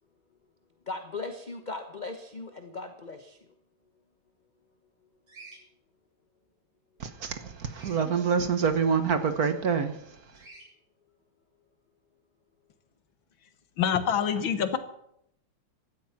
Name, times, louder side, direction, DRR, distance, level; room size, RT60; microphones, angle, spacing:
voice 1, 0.9-3.4, left 3 dB, 30° left, 0.8 m, -38 dB
Bird vocalization bird call bird song, 5.3-5.6 7.7-8.0 10.3-10.7, right 3 dB, 85° right, 7.5 m, -49 dB
voice 2, 7.0-10.0, right 6 dB, 50° right, 1.4 m, -26 dB
voice 3, 13.8-14.8, left 8 dB, 70° left, 2.0 m, -26 dB
16.5 x 12.5 x 5.9 m
omnidirectional pair, 2.3 m